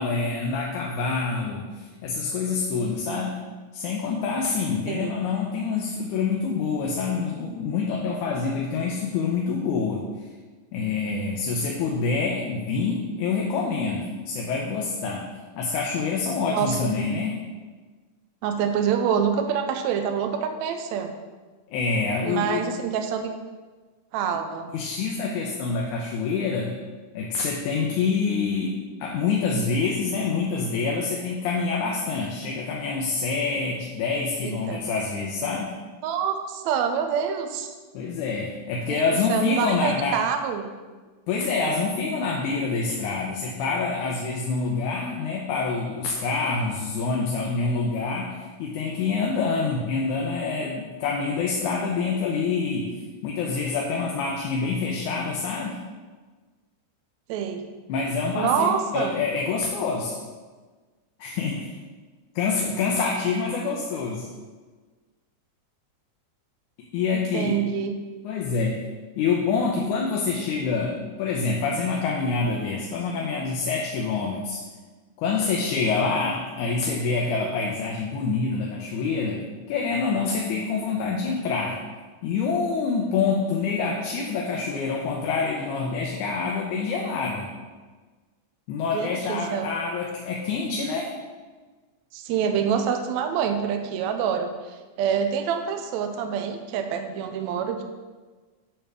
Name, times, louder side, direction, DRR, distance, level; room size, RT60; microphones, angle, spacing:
voice 1, 0.0-3.4 3.7-10.0 10.7-15.3 15.6-17.4 21.7-22.6 24.7-26.8 27.1-35.7 37.9-40.2 41.3-52.9 53.2-55.8 57.9-60.2 61.2-61.7 62.4-64.3 66.8-67.6 68.2-68.9 69.2-74.6 75.2-81.8 82.2-87.5 88.7-91.1, left 4 dB, 80° left, -1 dB, 2.2 m, -26 dB
voice 2, 16.5-17.1 18.4-21.1 22.2-23.3 24.1-24.7 34.4-34.8 36.0-37.8 38.9-39.0 39.3-40.7 57.3-57.6 58.4-59.2 67.1-68.0 88.9-89.7 92.1-97.8, right 7 dB, 80° right, 6 dB, 1.7 m, -26 dB
8.9 x 3.4 x 6.2 m, 1.3 s
omnidirectional pair, 3.5 m